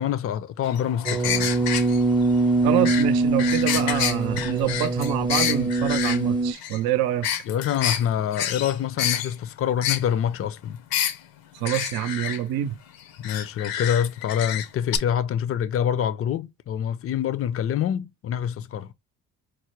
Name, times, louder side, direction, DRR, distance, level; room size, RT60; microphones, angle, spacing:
voice 1, 0.0-1.5 7.5-10.8 13.2-18.9, left 9 dB, 40° left, 0.5 m, -26 dB
sound 1, 0.6-6.2 6.5-6.8 7.2-8.0 8.3-9.3 9.8-10.0 10.9-11.2 11.6-12.4 13.2-14.7 14.9-15.0, left 10 dB, 75° left, 0.7 m, -28 dB
sound 2, 1.0-6.5, right 3 dB, 15° right, 0.6 m, -23 dB
voice 2, 2.6-7.3 11.5-12.8, right 11 dB, 75° right, 0.6 m, -26 dB
4.7 x 2.1 x 3.0 m
supercardioid pair, 80°, 36 cm